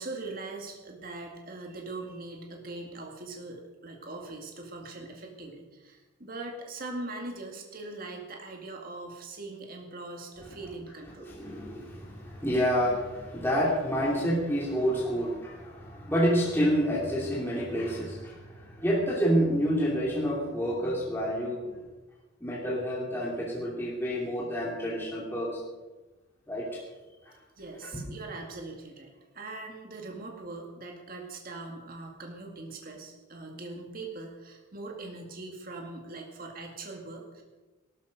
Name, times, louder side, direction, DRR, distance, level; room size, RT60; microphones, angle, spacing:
voice 1, 0.0-11.3 27.6-37.4, right 2 dB, 40° right, 1 dB, 2.1 m, -41 dB
voice 2, 11.2-21.8 22.4-25.6 26.5-26.8 27.8-28.0, equal, 10° left, -5 dB, 2.6 m, -28 dB
18.0 x 12.5 x 5.2 m, 1.2 s
head